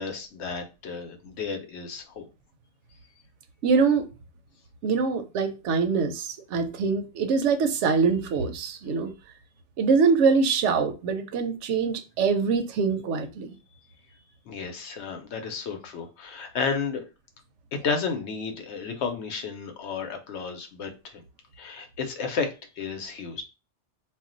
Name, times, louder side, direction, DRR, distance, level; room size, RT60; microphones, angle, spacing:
voice 1, 0.0-2.3 14.5-17.0 17.7-21.2 21.6-23.4, left 5 dB, 75° left, 0.9 m, -32 dB
voice 2, 3.6-4.1 4.8-9.1 9.8-13.6, right 5 dB, 80° right, 0.9 m, -24 dB
2.4 x 2.1 x 3.7 m
omnidirectional pair, 1.2 m